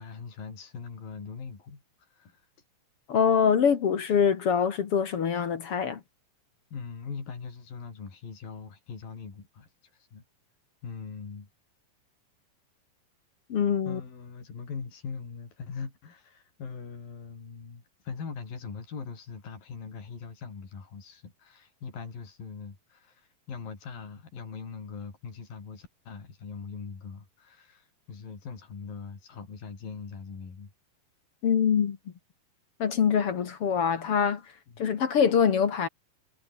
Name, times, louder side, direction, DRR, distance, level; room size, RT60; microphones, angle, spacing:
voice 1, 0.0-2.5 6.7-10.2 10.8-11.5 13.8-30.7 34.7-34.8, left 5 dB, 75° left, 6.9 m, -41 dB
voice 2, 3.1-6.0 13.5-14.0 31.4-32.0 32.8-34.4 34.8-35.9, left 7 dB, 50° left, 2.2 m, -24 dB
omnidirectional pair, 4.1 m